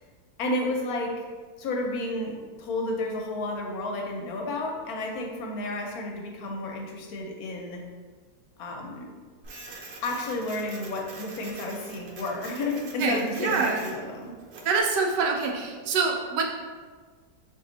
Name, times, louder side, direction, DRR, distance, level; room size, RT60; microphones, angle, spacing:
voice 1, 0.4-1.2 1.6-7.8 8.6-9.2 10.0-14.3, left 2 dB, 70° left, 1 dB, 1.0 m, -31 dB
Printer, 9.4-14.8, right 3 dB, 70° right, 1.1 m, -44 dB
voice 2, 13.0-13.8 14.6-16.4, right 4 dB, 85° right, 2 dB, 1.3 m, -25 dB
3.9 x 2.7 x 3.8 m, 1.5 s
omnidirectional pair, 1.8 m